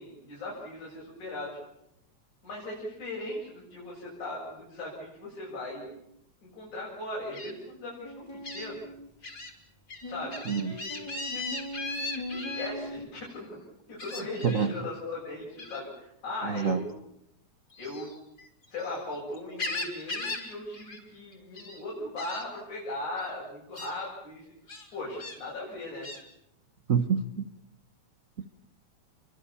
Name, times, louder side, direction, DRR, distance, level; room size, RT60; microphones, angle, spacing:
voice 1, 0.0-1.6 2.4-5.9 6.5-8.8 10.1-11.1 11.3-11.4 12.1-13.5 13.9-16.9 17.8-18.1 18.7-24.5 24.9-26.1, left 2 dB, 85° left, -4 dB, 9.2 m, -38 dB
Gull seagull, 7.3-7.5 8.4-8.7 9.2-9.5 9.9-12.7 14.0-14.7 15.6-15.9 17.7-19.0 19.3-20.5 20.7-21.0 21.3-21.8 22.2-22.4 23.2-23.3 23.7-23.9 24.7-25.4 26.0-26.2, left 3 dB, 30° left, 4.4 m, -37 dB
sound 1, 8.0-9.1 10.0-13.1, equal, 10° left, 2.3 m, -40 dB
voice 2, 10.4-10.8 14.4-14.7 16.4-16.8 26.9-27.5 28.4-28.5, right 6 dB, 75° right, 10 dB, 0.7 m, -27 dB
29.0 x 24.0 x 7.0 m, 0.80 s
omnidirectional pair, 3.3 m